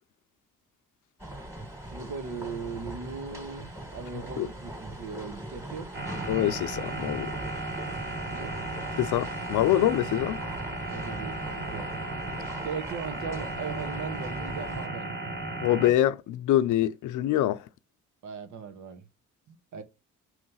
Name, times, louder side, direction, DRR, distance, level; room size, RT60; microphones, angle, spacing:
sound 1, 1.2-14.9, right 1 dB, 10° right, 2.0 m, -41 dB
voice 1, 1.8-5.9 8.3-8.5 10.9-11.9 12.6-15.1 18.2-19.0 19.5-19.8, right 5 dB, 75° right, 1.5 m, -38 dB
sound 2, 5.9-15.9, right 2 dB, 40° right, 1.9 m, -35 dB
voice 2, 6.3-7.3 9.0-10.4 15.6-17.6, left 13 dB, 80° left, 0.6 m, -25 dB
6.4 x 3.2 x 5.5 m
cardioid pair, 90°, 30 cm